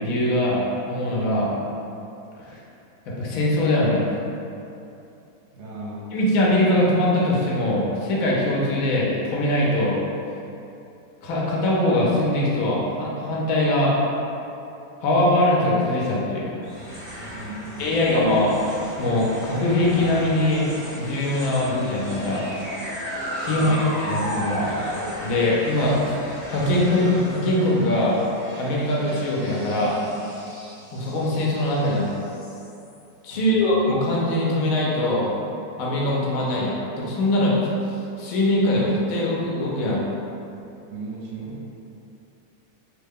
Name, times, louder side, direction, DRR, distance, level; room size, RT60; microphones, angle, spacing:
voice 1, 0.0-1.5 2.4-2.6 3.1-4.1 6.1-10.0 11.2-13.9 15.0-16.5 17.8-18.6 19.0-20.7 21.0-22.4 23.4-24.7 25.2-28.1 28.6-29.9 30.9-32.1 33.2-35.3 35.8-37.6 38.2-40.0, left 1 dB, 70° left, -4 dB, 1.0 m, -22 dB
voice 2, 5.5-6.1 17.3-18.0 23.5-23.9 33.3-33.7 40.9-41.7, right 2 dB, 60° right, -5 dB, 0.8 m, -36 dB
sound 1, 16.6-33.1, equal, 45° left, 0.5 m, -35 dB
3.1 x 2.2 x 3.5 m, 2.8 s
omnidirectional pair, 1.6 m